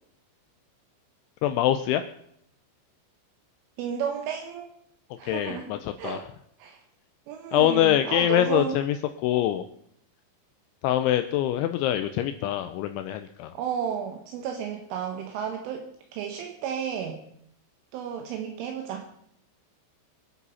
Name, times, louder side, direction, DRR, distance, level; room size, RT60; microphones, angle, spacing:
voice 1, 1.4-2.0 5.2-6.2 7.5-9.0 9.2-9.6 10.8-13.5, left 12 dB, 80° left, 9 dB, 2.7 m, -24 dB
voice 2, 3.8-4.7 5.2-6.2 6.6-6.8 7.3-8.7 13.5-17.2 17.9-19.1, right 8 dB, 75° right, 4 dB, 3.6 m, -32 dB
24.5 x 8.2 x 5.7 m, 0.71 s
omnidirectional pair, 5.9 m